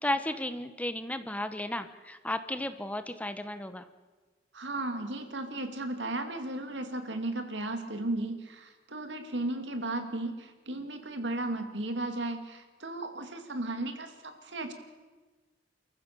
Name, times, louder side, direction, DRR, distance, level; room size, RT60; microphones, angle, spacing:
voice 1, 0.0-3.9, left 1 dB, 10° left, 11 dB, 0.9 m, -34 dB
voice 2, 4.5-14.7, right 2 dB, 80° right, 6 dB, 2.5 m, -35 dB
29.0 x 14.5 x 6.8 m, 1.3 s
head